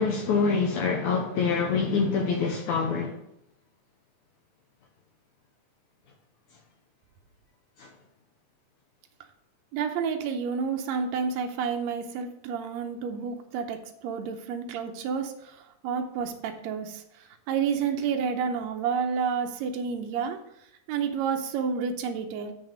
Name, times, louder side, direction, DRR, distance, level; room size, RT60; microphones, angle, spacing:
voice 1, 0.0-3.1 7.8-7.9, left 5 dB, 75° left, 1.9 m, -25 dB
voice 2, 9.7-20.4 20.9-22.5, right 6 dB, 90° right, 1.5 m, -30 dB
7.4 x 6.1 x 5.1 m
omnidirectional pair, 3.9 m